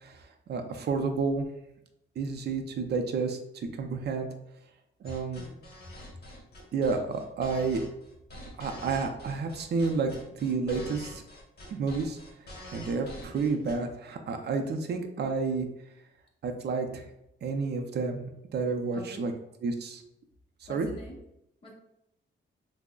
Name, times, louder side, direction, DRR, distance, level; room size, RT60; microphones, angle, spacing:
voice 1, 0.0-1.5 2.2-4.3 5.0-5.5 6.7-7.8 8.6-11.2 11.7-12.2 12.7-15.7 16.4-17.1 17.4-19.3 19.6-20.0 20.7-20.9, right 4 dB, 55° right, 5 dB, 0.5 m, -30 dB
sound 1, 5.0-13.8, left 1 dB, 55° left, 1.1 m, -45 dB
voice 2, 18.9-19.2 20.7-21.2 21.6-21.7, left 2 dB, 25° left, -2 dB, 0.8 m, -45 dB
5.9 x 2.0 x 2.3 m, 0.83 s
wide cardioid pair, 160°, 21 cm